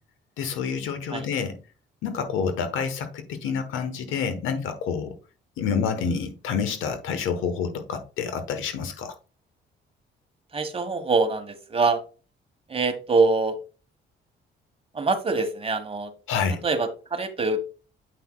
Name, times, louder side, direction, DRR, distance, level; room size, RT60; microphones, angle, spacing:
voice 1, 0.4-1.6 2.0-5.1 5.6-9.1 16.3-16.6, left 6 dB, 85° left, 1.1 m, -28 dB
voice 2, 10.5-12.0 12.7-13.6 14.9-16.1 16.6-17.6, right 3 dB, 30° right, 1.3 m, -24 dB
8.1 x 5.6 x 2.3 m
cardioid pair, 90°, 20 cm